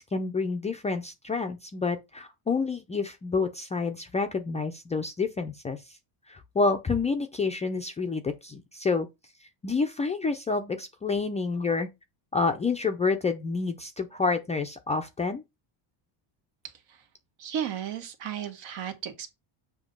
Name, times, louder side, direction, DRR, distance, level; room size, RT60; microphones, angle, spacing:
voice 1, 0.0-6.0 6.3-9.1 9.6-11.9 12.3-15.4, left 4 dB, 15° left, 0.4 m, -28 dB
voice 2, 17.4-19.3, right 9 dB, 70° right, 1.7 m, -34 dB
7.1 x 2.9 x 5.3 m
cardioid pair, 145°, 47 cm